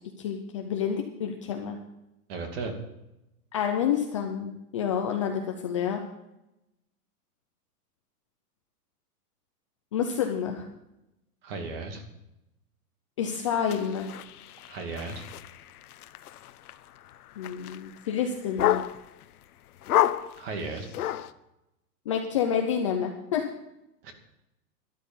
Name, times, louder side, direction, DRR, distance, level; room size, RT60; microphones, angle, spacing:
voice 1, 0.2-1.8 3.5-6.0 9.9-10.6 13.2-14.1 17.4-18.8 22.1-23.4, left 8 dB, 20° left, 2 dB, 0.5 m, -28 dB
voice 2, 2.3-2.7 11.4-12.0 14.7-15.3 20.4-20.9 24.0-24.1, right 4 dB, 35° right, 5 dB, 2.5 m, -35 dB
sound 1, 13.7-19.2 19.8-21.3, left 13 dB, 70° left, 0.9 m, -30 dB
12.5 x 12.0 x 5.5 m, 0.90 s
supercardioid pair, 175°, 47 cm